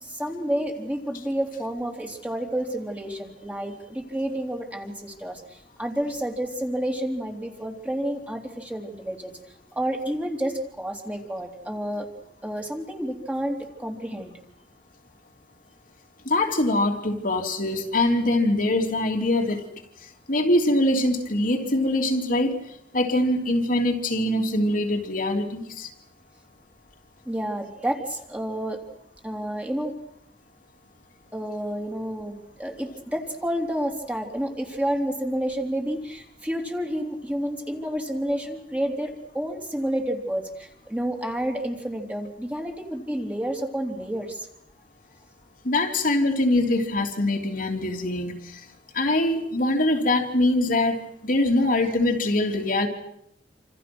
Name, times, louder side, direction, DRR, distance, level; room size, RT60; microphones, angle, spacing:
voice 1, 0.0-9.3 9.7-12.1 12.4-14.3 27.3-28.8 29.2-30.0 31.3-44.5, right 1 dB, 10° right, 2 dB, 3.5 m, -30 dB
voice 2, 16.2-19.6 20.3-22.6 22.9-25.9 45.6-48.6 48.9-52.9, left 1 dB, 50° left, 2 dB, 3.2 m, -23 dB
28.5 x 27.0 x 6.2 m, 0.76 s
head